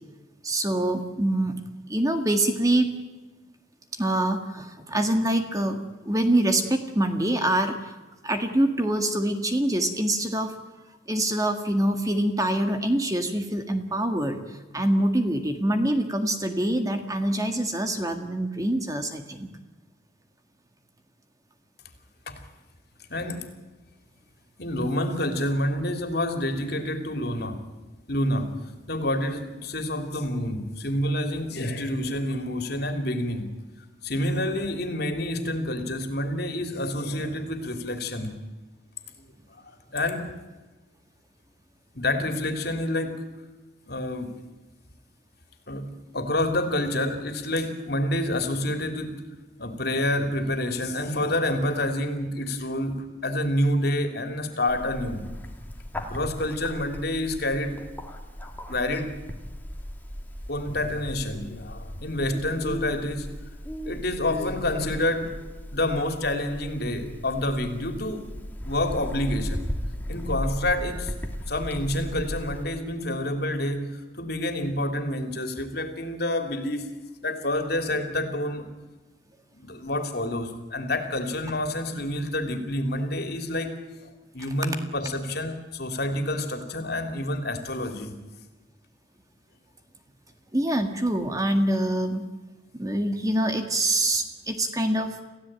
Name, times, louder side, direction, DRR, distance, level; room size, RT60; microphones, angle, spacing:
voice 1, 0.4-1.6 1.9-2.9 4.0-5.8 6.0-7.9 8.2-10.5 11.1-19.5 90.5-92.3 92.7-95.2, right 1 dB, 20° right, 6 dB, 1.9 m, -25 dB
voice 2, 23.1-23.4 24.6-27.6 28.1-28.5 28.9-33.5 34.0-38.3 39.2-39.3 39.6-40.3 41.9-43.2 43.9-44.3 45.7-49.1 49.6-55.2 56.0-57.8 58.7-59.1 60.5-63.3 63.8-65.3 65.7-68.2 68.6-69.6 70.1-71.1 71.5-76.9 77.2-78.7 79.5-83.7 84.0-88.1, left 1 dB, 55° left, 7 dB, 3.2 m, -28 dB
Bird, 54.7-72.6, equal, 10° left, 2.1 m, -36 dB
28.0 x 16.0 x 9.0 m, 1.2 s
head